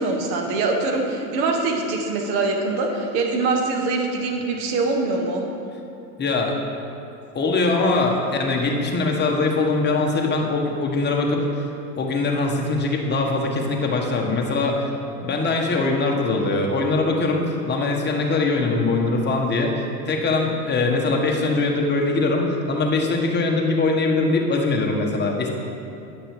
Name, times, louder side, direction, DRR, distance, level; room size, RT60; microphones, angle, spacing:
voice 1, 0.0-5.4, right 3 dB, 55° right, 2 dB, 1.5 m, -23 dB
voice 2, 6.2-6.5 7.3-11.7 12.0-14.9 15.2-25.5, left 3 dB, 20° left, 0 dB, 1.3 m, -22 dB
9.3 x 5.9 x 5.0 m, 2.7 s
hypercardioid pair, 90°, 48 cm